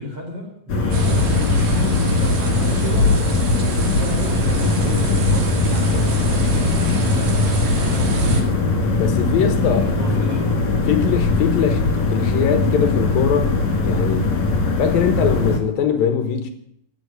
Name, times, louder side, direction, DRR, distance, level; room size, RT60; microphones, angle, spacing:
voice 1, 0.0-3.5 3.9-10.6, right 1 dB, 30° right, 4.6 m, -33 dB
sound 1, 0.7-15.6, left 3 dB, 45° left, 3.0 m, -20 dB
sound 2, 0.9-8.4, right 1 dB, 50° right, 3.2 m, -25 dB
voice 2, 9.0-9.9 10.8-13.6 13.8-14.3 14.8-16.5, left 7 dB, 65° left, 2.4 m, -21 dB
16.5 x 8.4 x 9.7 m
omnidirectional pair, 5.8 m